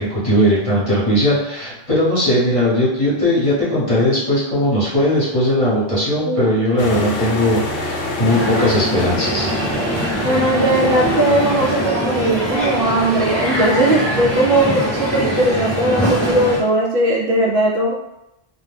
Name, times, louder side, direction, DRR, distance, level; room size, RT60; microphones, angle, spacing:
voice 1, 0.0-9.5, left 1 dB, 35° left, -9 dB, 0.9 m, -18 dB
sound 1, 6.8-11.9, left 1 dB, 70° left, 0.8 m, -26 dB
Crowd, 8.3-16.6, right 1 dB, ahead, 0.6 m, -22 dB
voice 2, 10.2-17.9, right 1 dB, 65° right, -3 dB, 0.7 m, -18 dB
2.3 x 2.1 x 3.2 m, 0.90 s
omnidirectional pair, 1.1 m